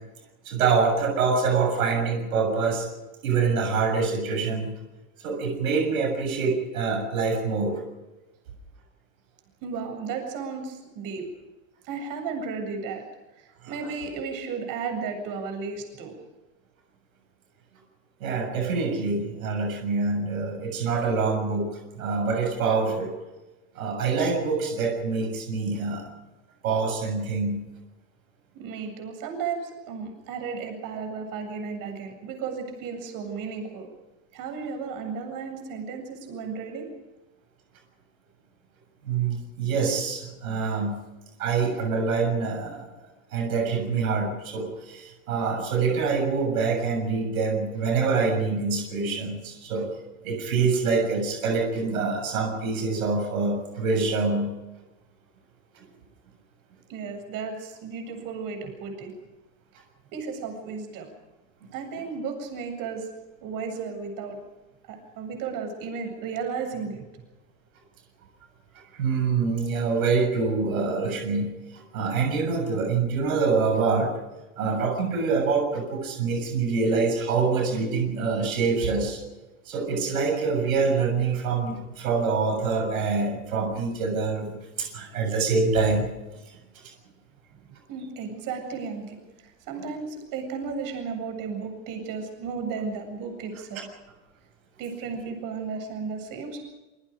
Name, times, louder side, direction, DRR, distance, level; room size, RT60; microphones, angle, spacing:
voice 1, 0.5-2.9 3.2-4.7 5.2-7.8 18.2-23.1 23.8-26.1 26.6-27.6 39.0-41.0 41.4-42.9 43.3-49.9 50.2-54.5 55.8-55.9 68.9-74.1 74.6-79.2 79.7-86.1, right 4 dB, 90° right, 3 dB, 7.0 m, -25 dB
voice 2, 9.6-11.3 11.8-13.0 13.4-16.1 28.5-33.9 34.3-36.9 56.9-59.1 60.1-61.1 61.7-63.1 63.4-64.4 64.9-67.0 87.9-93.9 94.8-96.6, right 5 dB, 55° right, 5 dB, 7.9 m, -34 dB
27.5 x 23.5 x 5.2 m, 1.1 s
supercardioid pair, 110°, 41 cm